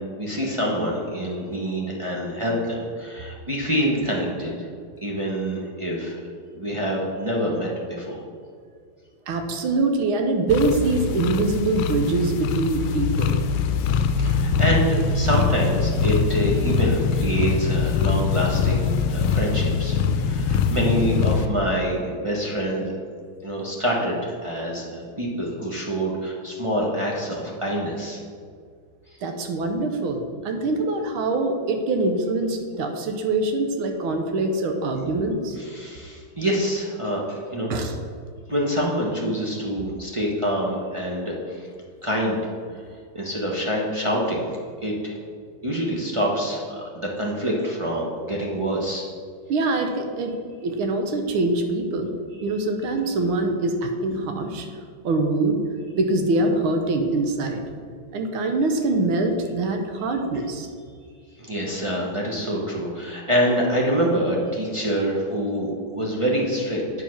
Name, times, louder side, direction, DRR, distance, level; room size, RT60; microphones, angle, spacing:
voice 1, 0.0-4.5 5.0-6.2 6.5-8.2 13.8-22.9 23.4-28.2 34.9-35.0 35.7-37.7 38.5-41.7 42.0-42.4 43.1-44.5 44.8-45.2 45.6-49.0 61.4-66.8, equal, 35° right, -4 dB, 0.5 m, -26 dB
voice 2, 9.3-13.4 29.2-35.6 37.7-37.9 49.5-50.3 50.6-52.1 52.4-54.7 55.0-55.6 55.9-57.6 58.1-60.7, right 2 dB, 75° right, 5 dB, 1.7 m, -24 dB
sound 1, 10.5-21.5, left 5 dB, 75° left, 1.3 m, -23 dB
8.8 x 4.9 x 5.8 m, 2.1 s
omnidirectional pair, 2.4 m